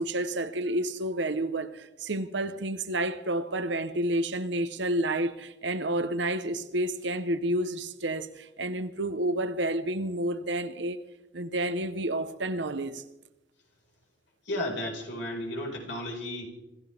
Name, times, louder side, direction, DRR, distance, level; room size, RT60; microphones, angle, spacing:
voice 1, 0.0-11.0 11.3-13.0, right 1 dB, 70° right, 1.1 m, -30 dB
voice 2, 14.5-16.5, left 1 dB, 70° left, 4.9 m, -33 dB
26.0 x 15.0 x 3.6 m
head